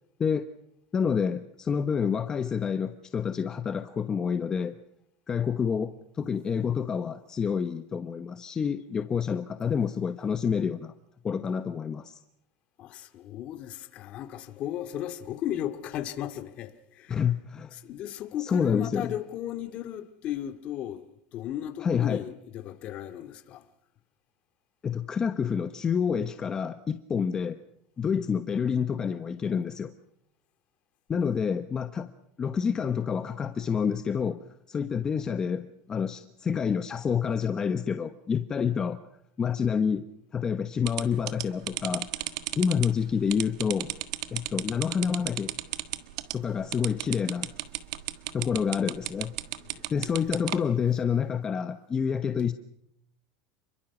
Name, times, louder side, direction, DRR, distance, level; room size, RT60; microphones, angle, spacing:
voice 1, 0.9-4.8 5.3-10.9 11.2-12.2 17.1-17.7 18.4-19.1 21.8-22.3 24.8-27.6 28.0-29.9 31.1-32.1 32.4-34.4 34.7-39.0 39.4-40.0 40.3-42.1 42.6-43.9 44.3-45.5 46.3-47.5 48.3-49.3 49.9-52.5, left 7 dB, 25° left, 1.1 m, -28 dB
voice 2, 12.8-17.2 17.7-21.0 21.3-23.6 49.6-50.4, left 11 dB, 45° left, 2.3 m, -36 dB
sound 1, 40.9-50.6, right 16 dB, 85° right, 1.6 m, -33 dB
29.5 x 22.5 x 6.1 m
supercardioid pair, 130°, 3 cm